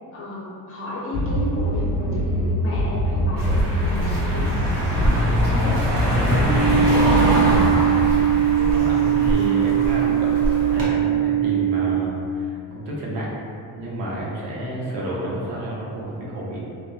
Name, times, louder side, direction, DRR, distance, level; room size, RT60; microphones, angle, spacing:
voice 1, 0.1-5.8 6.1-7.7, left 1 dB, 30° left, -5 dB, 0.6 m, -33 dB
sound 1, 1.1-7.5, equal, 5° left, 0.9 m, -24 dB
Car passing by, 3.4-10.8, equal, 50° right, 0.8 m, -24 dB
sound 2, 6.5-11.9, right 9 dB, 35° right, 1.1 m, -20 dB
voice 2, 8.6-13.3 13.7-16.6, right 1 dB, 85° right, -5 dB, 0.8 m, -30 dB
2.9 x 2.2 x 2.2 m, 2.4 s
cardioid pair, 145°, 41 cm